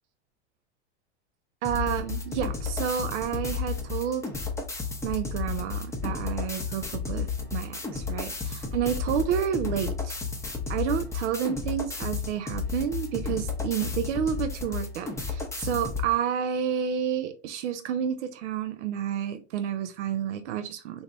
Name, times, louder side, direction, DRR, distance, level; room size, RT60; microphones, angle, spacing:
sound 1, 1.6-16.1, left 5 dB, 10° left, 0.7 m, -32 dB
voice 1, 1.6-4.2 5.0-10.2 10.7-21.0, right 9 dB, 80° right, 8 dB, 0.6 m, -30 dB
3.2 x 2.7 x 3.0 m, 0.32 s
hypercardioid pair, 110°, 35 cm